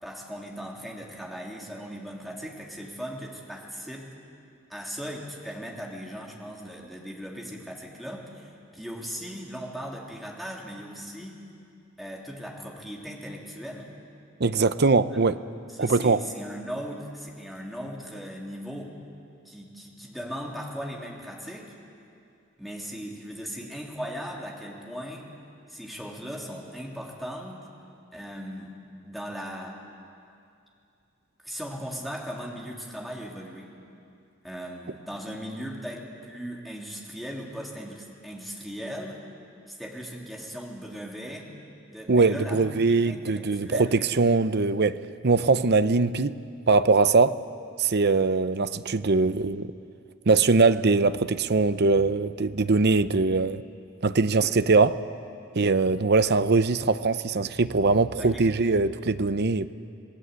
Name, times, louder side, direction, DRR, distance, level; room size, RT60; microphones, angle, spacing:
voice 1, 0.0-4.1 4.7-11.4 12.0-13.9 15.1-15.2 15.7-18.9 19.4-21.7 22.6-25.2 25.7-27.6 28.1-28.7 29.0-29.8 31.4-33.7 34.4-39.2 39.7-41.5 41.9-42.6 42.9-44.0 58.2-58.5, equal, ahead, -2 dB, 3.2 m, -38 dB
voice 2, 14.4-15.3 15.8-16.2 42.1-45.0 45.2-46.3 46.7-47.4 47.8-49.7 50.3-53.6 54.0-55.0 55.5-59.7, right 3 dB, 55° right, 13 dB, 0.7 m, -22 dB
27.0 x 18.0 x 8.3 m, 2.5 s
head